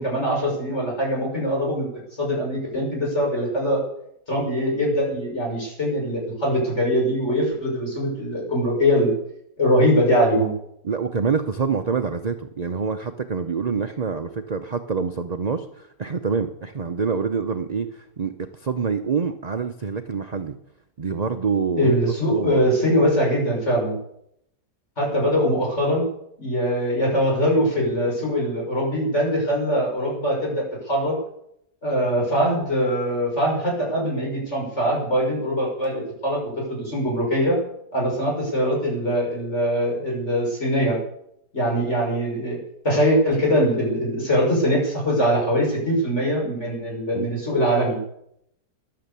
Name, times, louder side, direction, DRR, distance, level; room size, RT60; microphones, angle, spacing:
voice 1, 0.0-1.9 2.2-3.8 4.3-9.1 9.6-10.5 21.8-24.0 25.0-26.1 26.4-31.2 31.8-37.6 37.9-41.0 41.5-42.6 42.8-48.0, equal, 40° left, -2 dB, 6.3 m, -22 dB
voice 2, 10.8-20.6 21.0-22.0 22.3-22.6 47.1-47.3, right 5 dB, 55° right, 7 dB, 0.4 m, -26 dB
13.5 x 11.5 x 6.9 m, 0.75 s
omnidirectional pair, 1.8 m